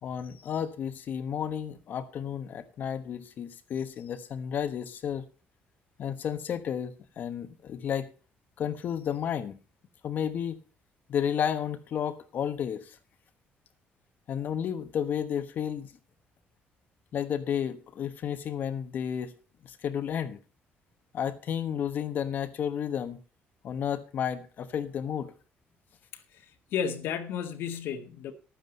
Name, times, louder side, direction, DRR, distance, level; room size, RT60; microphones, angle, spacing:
voice 1, 0.0-5.3 6.0-8.1 8.6-9.6 10.0-10.6 11.1-13.0 14.3-15.9 17.1-19.3 19.6-20.4 21.1-23.2 23.6-25.3, left 8 dB, 50° left, 1.2 m, -32 dB
voice 2, 26.7-28.3, left 7 dB, 75° left, 1.8 m, -33 dB
11.5 x 9.6 x 5.4 m
cardioid pair, 145°, 4 cm